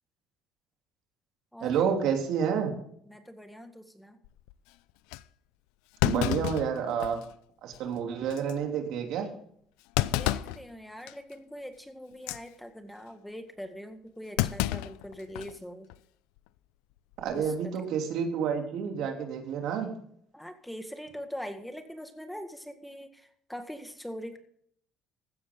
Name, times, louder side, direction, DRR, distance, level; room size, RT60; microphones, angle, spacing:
voice 1, 1.6-2.7 6.0-7.2 7.6-9.3 17.2-19.9, right 7 dB, 70° right, 3 dB, 3.2 m, -29 dB
voice 2, 3.1-4.2 10.0-15.9 17.3-17.4 20.3-23.1 23.5-24.4, equal, 5° left, 7 dB, 1.9 m, -42 dB
Thump thud, 4.2-4.5 5.1-5.2 6.0-7.3 7.7-7.8 8.3-8.5 9.9-10.6 11.1-11.3 12.1-12.4 14.4-15.6 15.9-16.0 17.1-17.5, left 16 dB, 90° left, 0.5 m, -30 dB
16.0 x 12.5 x 3.9 m, 0.64 s
supercardioid pair, 90°, 0 cm